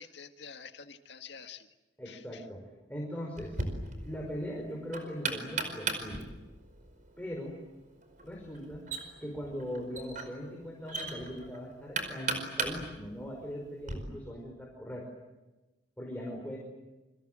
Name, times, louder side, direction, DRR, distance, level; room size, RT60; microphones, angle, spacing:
voice 1, 0.0-1.7 2.1-2.4, left 6 dB, 75° left, 7 dB, 1.9 m, -48 dB
voice 2, 2.0-3.6 4.0-6.3 7.2-7.5 8.2-8.9 9.2-15.1 16.0-16.6, equal, 10° left, -1 dB, 5.3 m, -40 dB
Knock, 3.4-14.0, right 3 dB, 45° right, 5.0 m, -38 dB
28.5 x 26.0 x 7.7 m, 1.1 s
head